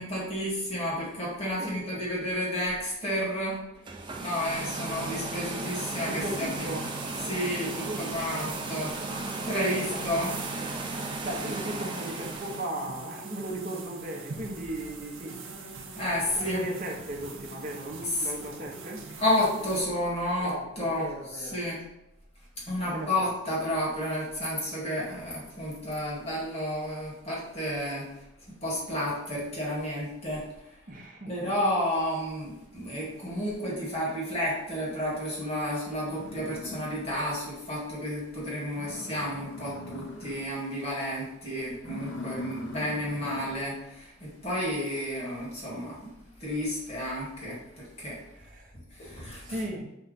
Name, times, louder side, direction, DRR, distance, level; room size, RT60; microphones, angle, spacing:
voice 1, 0.0-3.6 4.2-6.7 7.3-7.7 8.0-8.9 9.4-10.3 16.0-16.6 19.2-21.1 21.5-21.8 22.7-28.1 28.6-30.5 31.3-46.1 46.4-48.2 48.9-49.5, equal, 30° left, -6 dB, 1.5 m, -31 dB
voice 2, 1.6-2.1 6.1-6.8 7.6-8.6 9.9-10.1 11.2-15.4 16.4-19.0 20.4-21.6 22.9-23.3 30.9-31.4 48.4-48.7 49.4-49.8, right 1 dB, 40° right, 0 dB, 0.8 m, -37 dB
sound 1, 3.8-12.7, right 3 dB, 25° right, 0.4 m, -35 dB
sound 2, 5.6-19.8, right 4 dB, 75° right, 0.6 m, -43 dB
sound 3, 36.1-37.5 37.9-38.0 38.4-38.5 38.7-40.6 40.9-41.2 41.7-43.8, left 2 dB, 60° left, 0.6 m, -42 dB
5.3 x 2.3 x 3.9 m, 0.89 s
head